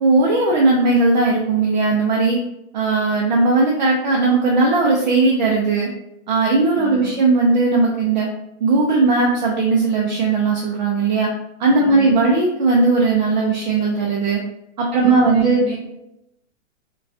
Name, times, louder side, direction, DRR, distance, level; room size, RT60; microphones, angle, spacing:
voice 1, 0.0-2.4 2.7-5.9 6.3-8.3 8.6-11.3 11.6-14.4 14.8-15.6, right 3 dB, 40° right, -2 dB, 0.5 m, -17 dB
voice 2, 6.7-7.2 11.8-12.3 14.9-15.8, right 5 dB, 15° right, -5 dB, 0.9 m, -32 dB
4.7 x 2.3 x 2.6 m, 0.84 s
hypercardioid pair, 170°, 37 cm